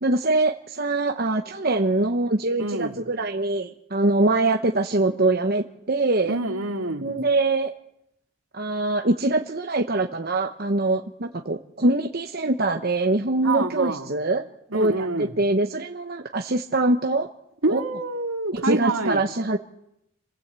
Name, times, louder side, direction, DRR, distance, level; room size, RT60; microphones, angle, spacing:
voice 1, 0.0-6.4 7.0-7.7 8.5-14.5 14.7-17.3 17.7-17.8 18.5-19.6, right 2 dB, 45° right, 4 dB, 1.0 m, -23 dB
voice 2, 2.6-2.9 6.2-7.2 13.4-14.1 14.7-15.3 17.6-19.2, right 2 dB, 75° right, 3 dB, 2.6 m, -27 dB
27.5 x 17.0 x 8.3 m, 0.82 s
head